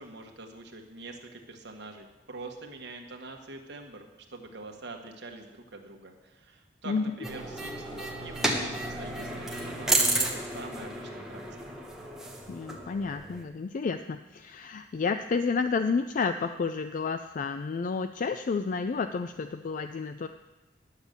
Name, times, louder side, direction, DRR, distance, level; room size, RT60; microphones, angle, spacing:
voice 1, 0.0-11.7, right 2 dB, 65° right, 3 dB, 1.5 m, -45 dB
sound 1, 7.2-13.4, right 1 dB, 5° right, 1.2 m, -32 dB
voice 2, 12.5-20.3, left 4 dB, 45° left, 9 dB, 0.4 m, -30 dB
10.5 x 7.2 x 6.7 m, 1.1 s
head